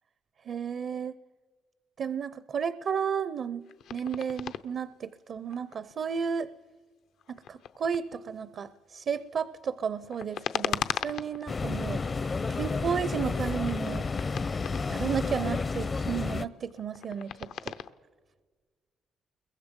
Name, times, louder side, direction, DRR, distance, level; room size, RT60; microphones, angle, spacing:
voice 1, 0.4-1.1 2.0-6.5 7.3-12.0 12.5-14.3 14.9-17.7, right 7 dB, 60° right, 16 dB, 0.6 m, -33 dB
sound 1, 3.6-4.6 5.2-6.4 7.2-8.4 9.9-11.7 12.2-12.8 13.0-15.2 16.0-17.9, left 9 dB, 80° left, 0.7 m, -38 dB
sound 2, 11.5-16.4, left 4 dB, 35° left, 0.6 m, -31 dB
29.5 x 22.5 x 5.3 m, 1.5 s
cardioid pair, 90°, 0 cm